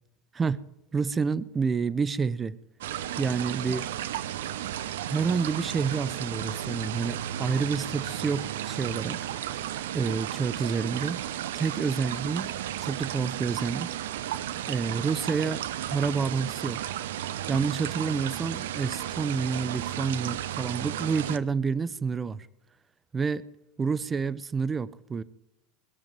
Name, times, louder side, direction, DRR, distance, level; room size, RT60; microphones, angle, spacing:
voice 1, 0.9-2.6 3.2-3.9 5.0-9.6 9.9-11.2 11.5-12.5 12.8-14.0 14.7-16.8 17.5-22.5 23.1-23.4 23.8-25.2, right 5 dB, 20° right, 18 dB, 0.6 m, -29 dB
sound 1, 2.8-21.4, right 11 dB, 80° right, 0.8 m, -34 dB
21.0 x 7.2 x 9.2 m, 0.89 s
hypercardioid pair, 105°, 0 cm